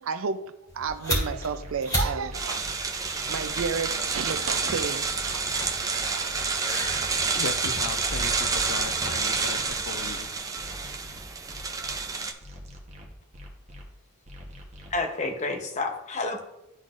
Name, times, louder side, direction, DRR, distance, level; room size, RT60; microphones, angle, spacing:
voice 1, 0.0-2.6 3.3-5.5 6.0-6.5, right 5 dB, 80° right, 0.4 m, -32 dB
sound 1, 0.7-9.8, equal, 20° left, 2.2 m, -36 dB
sound 2, 0.9-1.0 1.3-2.8 3.2-4.6 5.0-6.4 6.9-8.3 8.7-10.1 10.6-12.0 12.4-13.8 14.3-15.0, left 1 dB, 35° right, 1.0 m, -44 dB
sound 3, 2.3-12.3, right 4 dB, 15° right, 0.4 m, -29 dB
voice 2, 7.3-10.3, left 5 dB, 75° left, 0.4 m, -37 dB
voice 3, 14.9-16.4, left 3 dB, 35° left, 0.7 m, -29 dB
11.5 x 3.9 x 2.5 m
head